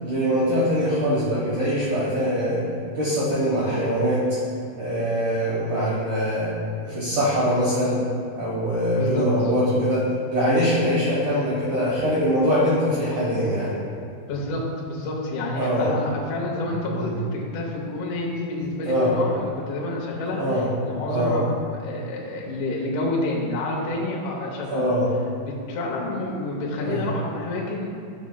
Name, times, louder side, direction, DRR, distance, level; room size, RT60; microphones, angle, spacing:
voice 1, 0.0-2.6 2.9-4.2 4.8-6.5 6.8-8.0 8.4-13.8 15.6-15.9 16.9-17.1 18.8-19.1 20.4-20.7 21.1-21.4 24.7-25.1 26.8-27.0, equal, 75° right, -9 dB, 1.8 m, -23 dB
voice 2, 14.3-24.9 25.4-27.9, left 2 dB, 75° left, -3 dB, 3.1 m, -29 dB
10.5 x 6.2 x 2.3 m, 2.5 s
omnidirectional pair, 5.7 m